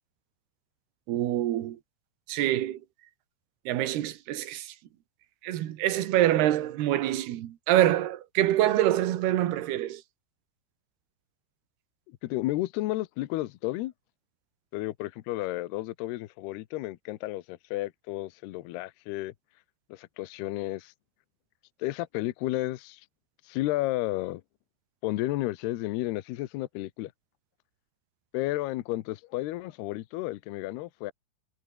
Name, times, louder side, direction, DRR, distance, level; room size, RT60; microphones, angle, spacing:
voice 1, 1.1-1.8 2.3-2.8 3.7-4.7 5.4-10.0, right 13 dB, 65° right, 3.0 m, -25 dB
voice 2, 12.2-13.9 14.7-19.3 19.9-20.9 21.8-23.0 23.5-24.4 25.0-27.1 28.3-31.1, left 17 dB, 80° left, 2.4 m, -32 dB
omnidirectional pair, 5.9 m